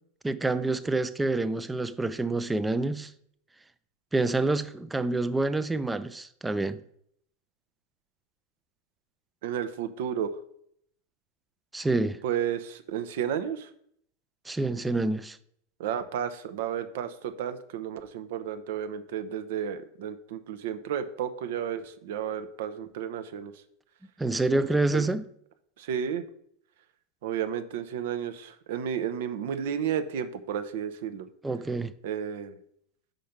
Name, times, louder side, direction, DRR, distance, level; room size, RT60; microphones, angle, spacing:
voice 1, 0.2-3.1 4.1-6.8 11.7-12.2 14.5-15.4 24.2-25.2 31.4-31.9, right 2 dB, 10° right, 0.4 m, -27 dB
voice 2, 9.4-10.3 12.2-13.7 15.8-23.5 24.5-24.6 24.9-25.1 25.8-26.2 27.2-31.3 32.0-32.5, right 8 dB, 70° right, 0.8 m, -32 dB
5.3 x 5.1 x 5.9 m
supercardioid pair, 145°, 0 cm